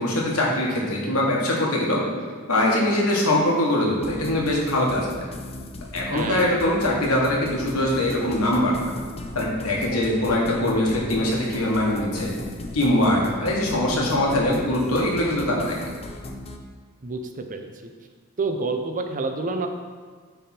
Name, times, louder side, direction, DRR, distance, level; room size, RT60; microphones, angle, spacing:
voice 1, 0.0-2.0 2.5-5.2 5.9-8.9 9.3-12.3 12.7-15.9, left 1 dB, 85° left, -3 dB, 1.5 m, -22 dB
sound 1, 4.0-16.6, left 1 dB, 30° left, 0.5 m, -37 dB
voice 2, 6.1-6.4 17.0-17.9 18.4-19.7, right 3 dB, 40° right, 6 dB, 0.5 m, -28 dB
8.9 x 3.5 x 4.3 m, 1.5 s
head